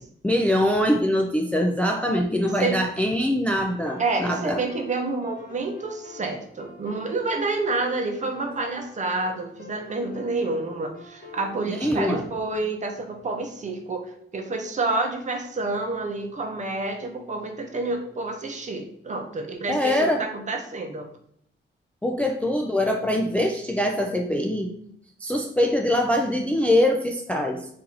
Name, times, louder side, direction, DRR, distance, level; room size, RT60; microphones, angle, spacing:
voice 1, 0.2-4.6 11.7-12.2 19.7-20.3 22.0-24.7 25.2-27.7, left 1 dB, 5° left, 2 dB, 0.3 m, -23 dB
sound 1, 3.6-12.3, left 3 dB, 45° left, 1.1 m, -45 dB
voice 2, 4.0-14.1 14.3-21.1, right 3 dB, 35° right, 4 dB, 0.7 m, -28 dB
4.3 x 2.6 x 3.8 m, 0.68 s
wide cardioid pair, 160°, 21 cm